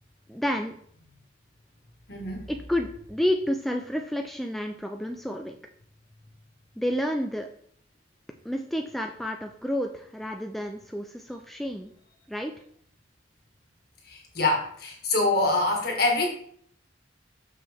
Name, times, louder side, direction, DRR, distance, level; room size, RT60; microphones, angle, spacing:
voice 1, 0.3-0.8 2.5-5.6 6.8-7.5 8.4-11.9 12.3-12.5, equal, ahead, 3 dB, 0.4 m, -30 dB
voice 2, 2.1-2.4 14.1-16.3, left 2 dB, 55° left, 1 dB, 1.7 m, -25 dB
6.4 x 5.9 x 3.5 m, 0.62 s
head